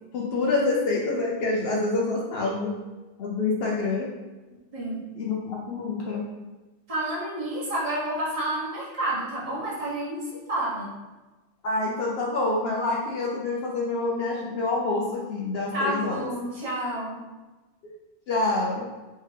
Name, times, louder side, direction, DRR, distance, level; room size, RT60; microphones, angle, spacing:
voice 1, 0.1-2.7 3.2-4.1 5.2-6.2 11.6-16.2 17.8-17.9 18.3-18.8, left 3 dB, 65° left, -3 dB, 0.7 m, -27 dB
voice 2, 4.7-5.1 6.9-10.2 10.5-10.9 15.7-17.2, right 1 dB, 30° right, -6 dB, 1.1 m, -30 dB
3.3 x 3.3 x 3.3 m, 1.2 s
omnidirectional pair, 1.2 m